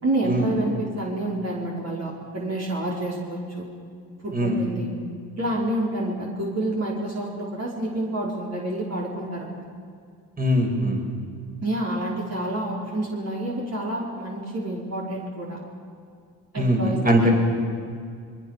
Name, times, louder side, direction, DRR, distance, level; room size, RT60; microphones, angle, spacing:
voice 1, 0.0-3.7 4.2-4.9 5.3-9.6 11.6-15.6 16.5-17.3, right 1 dB, 35° right, -4 dB, 5.4 m, -28 dB
voice 2, 4.3-4.6 10.4-11.0 16.6-17.3, equal, 20° right, 1 dB, 6.0 m, -21 dB
27.0 x 22.0 x 6.9 m, 2.2 s
supercardioid pair, 65°, 44 cm